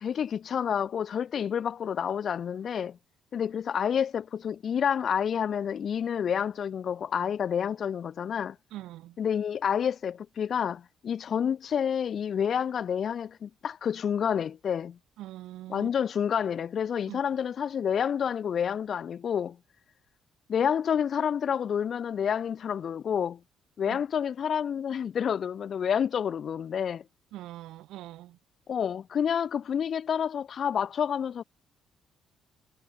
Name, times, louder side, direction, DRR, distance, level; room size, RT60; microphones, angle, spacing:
voice 1, 0.0-3.0 3.3-8.6 9.2-15.0 15.7-19.6 20.5-23.4 23.8-27.0 28.7-31.4, left 8 dB, 50° left, 0.6 m, -29 dB
voice 2, 8.7-9.2 15.2-15.9 17.1-17.2 23.9-24.0 27.3-28.4, right 15 dB, 85° right, 4.3 m, -43 dB
cardioid pair, 115°, 0 cm